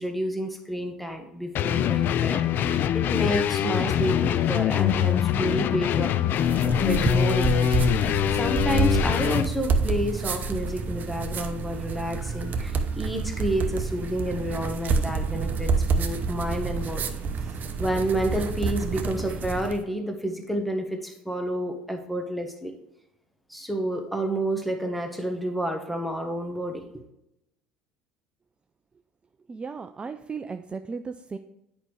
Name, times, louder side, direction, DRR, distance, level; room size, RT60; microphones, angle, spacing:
voice 1, 0.0-6.1 6.8-17.0 17.8-22.7 23.5-27.0, right 1 dB, ahead, 4 dB, 1.3 m, -30 dB
sound 1, 1.5-9.5, left 10 dB, 50° left, 0.4 m, -23 dB
sound 2, 6.3-19.8, right 4 dB, 45° right, 0.8 m, -28 dB
voice 2, 29.5-31.4, right 5 dB, 25° right, 8 dB, 0.4 m, -35 dB
8.7 x 5.1 x 3.2 m, 0.86 s
hypercardioid pair, 65°, 4 cm